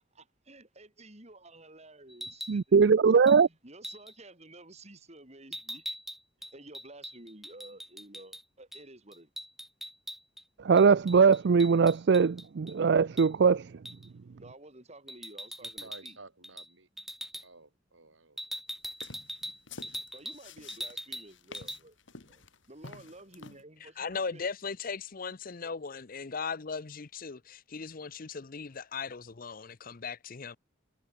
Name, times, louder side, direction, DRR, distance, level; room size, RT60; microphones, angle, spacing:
voice 1, 0.1-2.8 3.6-5.8 6.4-9.3 14.4-16.2 20.1-24.5, right 2 dB, 35° right, 5.0 m, -52 dB
sound 1, 2.1-2.6 3.3-3.4 3.8-4.1 5.5-8.4 8.7-8.8 9.1-10.4 10.8-12.7 13.2-13.3 13.8-14.1 15.1-16.2 16.4-16.7 17.0-17.4 18.4-20.4 20.7-21.3 21.5-21.8, equal, ahead, 4.8 m, -41 dB
voice 2, 2.5-3.5 10.6-13.7, right 5 dB, 60° right, 0.4 m, -21 dB
voice 3, 15.6-16.9 17.4-18.6 23.1-23.3, right 3 dB, 80° right, 6.5 m, -53 dB
sound 2, 18.9-23.6, left 4 dB, 70° left, 2.7 m, -49 dB
voice 4, 24.0-30.6, left 5 dB, 45° left, 0.7 m, -38 dB
head